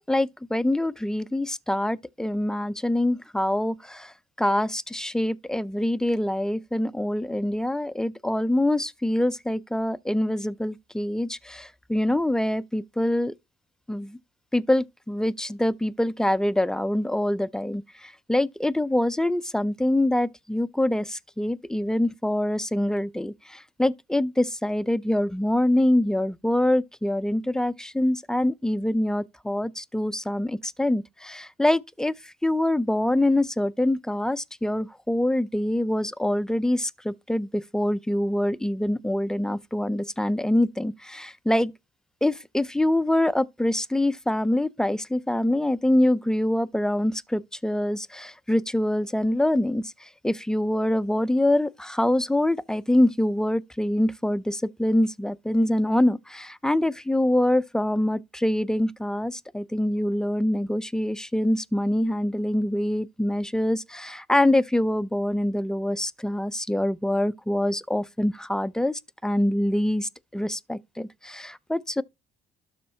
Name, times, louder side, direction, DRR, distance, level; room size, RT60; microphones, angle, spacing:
voice 1, 0.0-4.1 4.4-13.3 13.9-14.2 14.5-41.7 42.2-72.0, left 1 dB, 5° left, 0.4 m, -25 dB
12.5 x 4.3 x 2.7 m
cardioid pair, 110°, 17 cm